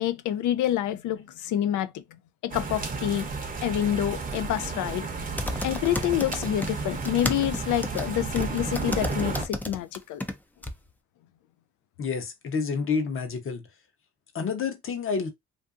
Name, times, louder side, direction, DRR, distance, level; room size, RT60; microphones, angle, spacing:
voice 1, 0.0-3.3 3.6-5.1 5.6-10.2, left 12 dB, 75° left, 0.5 m, -27 dB
sound 1, 2.5-9.5, right 4 dB, 30° right, 0.7 m, -33 dB
sound 2, 5.4-6.7 7.0-10.3 10.6-10.7, left 1 dB, 5° left, 0.4 m, -32 dB
voice 2, 12.0-13.7 14.3-15.3, left 5 dB, 45° left, 0.8 m, -29 dB
2.5 x 2.5 x 2.4 m
cardioid pair, 90°, 30 cm